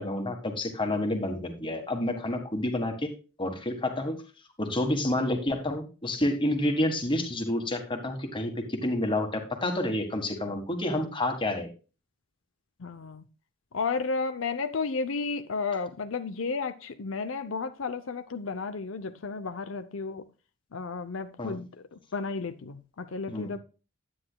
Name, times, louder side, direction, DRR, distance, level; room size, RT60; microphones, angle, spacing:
voice 1, 0.0-3.1 3.4-4.2 4.6-11.7 21.4-21.6 23.3-23.5, left 1 dB, 25° left, 1.5 m, -29 dB
voice 2, 12.8-13.3 13.7-20.3 20.7-23.6, left 4 dB, 75° left, 0.6 m, -33 dB
10.0 x 9.6 x 2.3 m
head